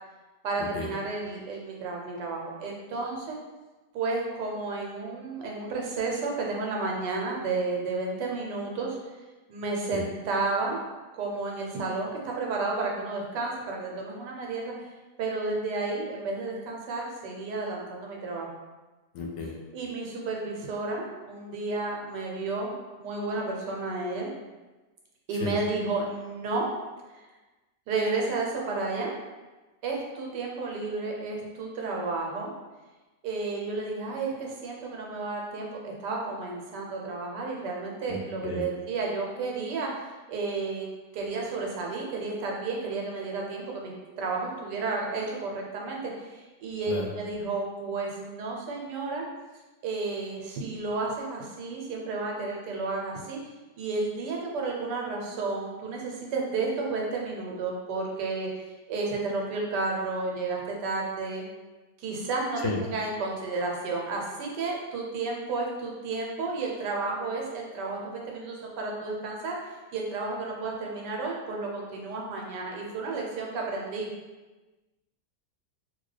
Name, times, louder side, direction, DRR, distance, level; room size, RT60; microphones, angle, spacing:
voice 1, 0.4-3.4 3.9-9.0 9.5-10.8 11.1-14.9 15.2-18.5 19.7-24.3 25.3-26.7 27.1-27.2 27.9-29.1 29.8-32.5 33.2-39.9 40.3-40.9 41.1-49.2 49.8-53.4 53.8-61.5 62.0-69.6 69.9-74.1, right 3 dB, 85° right, -1 dB, 1.3 m, -32 dB
voice 2, 19.1-19.5 25.4-25.5 38.1-38.7 46.9-47.0 62.6-62.8, left 3 dB, 85° left, 1 dB, 1.2 m, -32 dB
2.8 x 2.7 x 3.2 m, 1.2 s
omnidirectional pair, 1.8 m